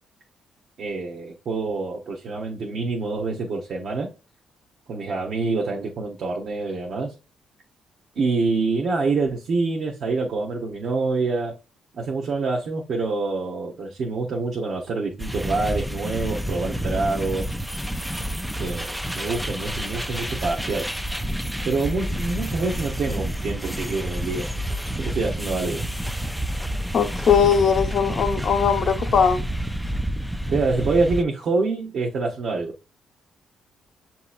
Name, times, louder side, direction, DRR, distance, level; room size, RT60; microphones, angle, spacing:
voice 1, 0.8-4.1 4.9-7.1 8.1-11.6 12.0-17.5 18.6-20.9 21.6-24.5 24.9-25.8 30.5-32.7, right 3 dB, 65° right, 0.9 m, -26 dB
sound 1, 15.2-31.2, equal, 5° right, 0.3 m, -29 dB
voice 2, 26.9-29.4, left 6 dB, 55° left, 0.8 m, -20 dB
6.7 x 2.9 x 2.4 m
cardioid pair, 90°, 0 cm